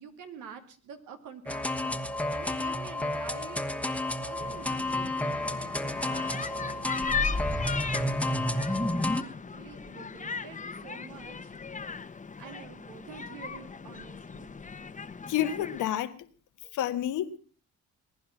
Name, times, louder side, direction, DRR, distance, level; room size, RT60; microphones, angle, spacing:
voice 1, 0.0-11.5 12.4-14.5, right 7 dB, 90° right, 2.4 m, -48 dB
sound 1, 1.5-9.2, left 1 dB, 5° left, 1.2 m, -30 dB
sound 2, 4.4-15.9, left 5 dB, 25° left, 1.0 m, -38 dB
voice 2, 15.3-16.2 16.7-17.4, left 11 dB, 85° left, 1.4 m, -29 dB
20.5 x 10.5 x 5.8 m
cardioid pair, 90°, 30 cm